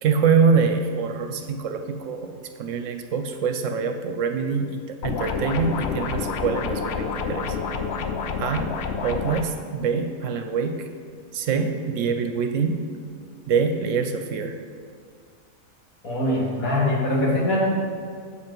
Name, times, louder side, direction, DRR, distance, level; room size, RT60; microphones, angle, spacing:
voice 1, 0.0-7.6 8.4-8.7 9.0-10.8 11.3-12.8 13.5-14.6, right 5 dB, 70° right, 6 dB, 0.9 m, -24 dB
sound 1, 5.0-9.4, left 5 dB, 60° left, 0.7 m, -28 dB
voice 2, 16.0-17.6, left 1 dB, 75° left, -4 dB, 2.3 m, -22 dB
8.3 x 5.6 x 5.3 m, 2.1 s
omnidirectional pair, 1.5 m